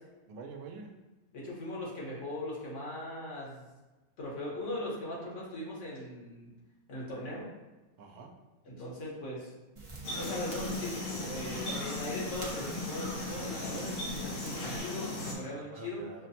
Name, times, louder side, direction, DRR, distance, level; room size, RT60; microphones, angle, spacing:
voice 1, 0.3-1.0 8.0-8.4 15.4-16.3, right 4 dB, 85° right, 4 dB, 1.0 m, -47 dB
voice 2, 1.3-3.6 4.2-6.5 6.9-7.5 8.7-9.5 10.1-16.0, left 1 dB, 60° left, -4 dB, 1.4 m, -39 dB
sound 1, 9.8-14.8, right 1 dB, 30° right, 0.5 m, -47 dB
sound 2, 10.0-15.3, left 1 dB, 80° left, 1.4 m, -37 dB
6.3 x 2.1 x 2.7 m, 1.1 s
omnidirectional pair, 1.4 m